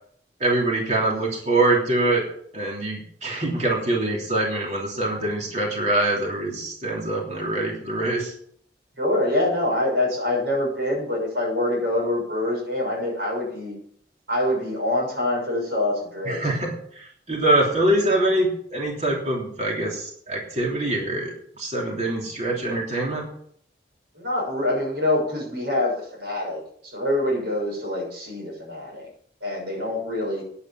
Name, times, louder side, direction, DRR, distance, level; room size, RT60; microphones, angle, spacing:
voice 1, 0.4-2.2 2.5-8.3 16.2-23.3, right 2 dB, 40° right, -2 dB, 3.1 m, -24 dB
voice 2, 9.0-13.7 14.3-16.5 24.1-29.1 29.4-30.4, left 1 dB, 75° right, 0 dB, 6.3 m, -25 dB
10.0 x 9.1 x 7.2 m, 0.64 s
head